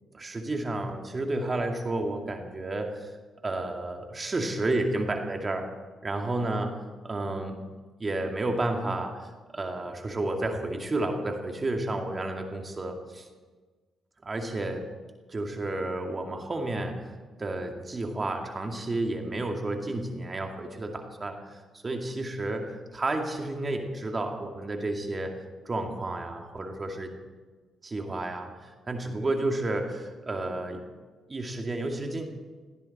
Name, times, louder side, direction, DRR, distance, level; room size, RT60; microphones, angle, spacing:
voice 1, 0.1-3.1 3.4-5.7 6.0-6.8 7.0-7.6 8.0-13.3 14.2-14.9 15.3-25.3 25.7-27.1 27.8-30.8 31.3-32.2, right 2 dB, 35° right, 3 dB, 2.4 m, -31 dB
18.5 x 17.0 x 4.4 m, 1.4 s
supercardioid pair, 60°, 0 cm